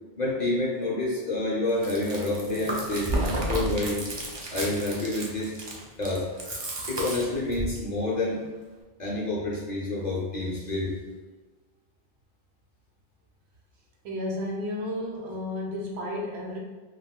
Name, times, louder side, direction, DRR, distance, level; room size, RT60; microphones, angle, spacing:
voice 1, 0.2-3.1 3.5-4.0 4.5-5.5 6.0-6.3 6.9-8.4 9.0-11.0, left 2 dB, 50° left, -5 dB, 0.6 m, -28 dB
Chewing mastication, 1.7-7.8, right 1 dB, 45° right, 0.3 m, -32 dB
voice 2, 14.0-16.6, left 1 dB, 70° right, -1 dB, 0.9 m, -32 dB
2.5 x 2.3 x 3.5 m, 1.2 s
omnidirectional pair, 1.2 m